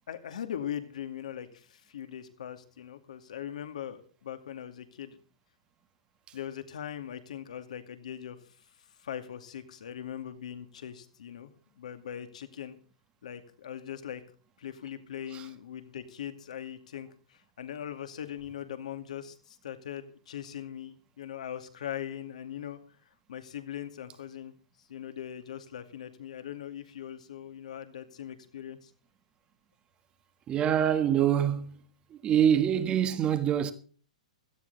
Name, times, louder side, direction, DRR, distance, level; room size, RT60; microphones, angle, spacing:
voice 1, 0.1-5.2 6.3-8.4 9.0-12.8 13.2-14.2 14.6-22.8 23.3-24.5 24.9-28.9, left 10 dB, 70° left, 2.3 m, -40 dB
voice 2, 30.5-31.8 32.2-33.7, right 9 dB, 25° right, 1.5 m, -25 dB
16.5 x 13.0 x 4.0 m
hypercardioid pair, 120°, 4 cm